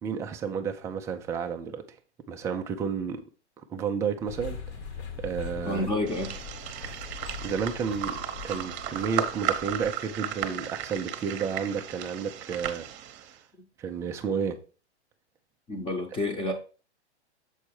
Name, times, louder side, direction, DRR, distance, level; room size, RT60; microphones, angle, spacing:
voice 1, 0.0-2.0 2.3-3.2 3.7-4.6 5.2-5.9 7.4-8.2 8.4-12.9 13.8-14.6, right 6 dB, 10° right, 0.3 m, -31 dB
sound 1, 4.3-9.9, left 5 dB, 70° left, 1.5 m, -41 dB
voice 2, 5.7-6.3 15.7-16.5, left 2 dB, 15° left, 0.9 m, -29 dB
sound 2, 6.1-13.4, right 10 dB, 30° right, 0.9 m, -35 dB
7.1 x 4.3 x 4.6 m
hypercardioid pair, 130°, 34 cm